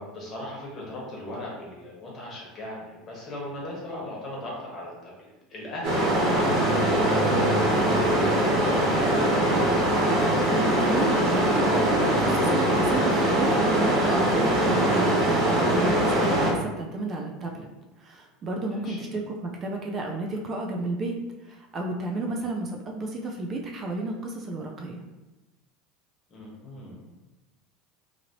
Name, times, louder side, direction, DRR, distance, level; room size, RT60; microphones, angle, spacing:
voice 1, 0.0-9.5 18.7-19.1 22.2-22.5 26.3-27.0, left 1 dB, 35° left, -4 dB, 1.1 m, -37 dB
sound 1, 5.8-16.5, right 1 dB, 70° right, 1.3 m, -22 dB
voice 2, 10.6-17.7 18.0-21.2 21.5-25.0, right 2 dB, 35° right, 1 dB, 0.4 m, -32 dB
2.8 x 2.8 x 2.7 m, 1.1 s
supercardioid pair, 120°, 0 cm